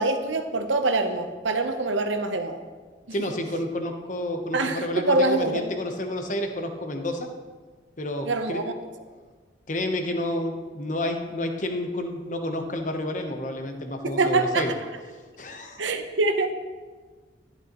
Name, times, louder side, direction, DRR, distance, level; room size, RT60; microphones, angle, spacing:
voice 1, 0.0-2.6 4.5-5.7 8.3-8.7 14.2-14.6 15.8-16.5, right 2 dB, 85° right, 7 dB, 0.8 m, -24 dB
voice 2, 3.1-7.3 8.0-8.7 9.7-14.7 15.4-15.8, left 1 dB, 40° left, 5 dB, 0.9 m, -30 dB
11.5 x 11.0 x 3.0 m, 1.4 s
head